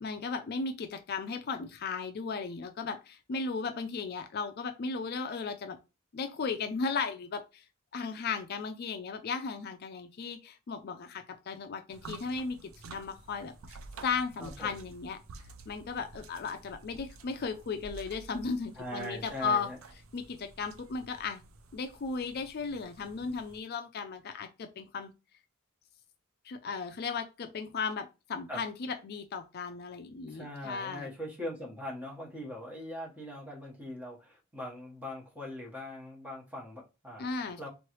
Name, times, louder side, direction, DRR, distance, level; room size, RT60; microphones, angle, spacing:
voice 1, 0.0-5.8 6.1-7.7 7.9-15.2 15.7-19.7 20.1-21.4 21.7-25.1 26.4-31.1 37.2-37.7, left 5 dB, 50° left, 0.4 m, -36 dB
sound 1, 11.9-23.6, right 3 dB, 75° right, 0.5 m, -51 dB
voice 2, 14.4-14.7 18.8-19.8 28.5-28.6 30.3-37.3 37.6-37.7, left 1 dB, 10° right, 1.2 m, -41 dB
3.7 x 3.1 x 3.1 m
head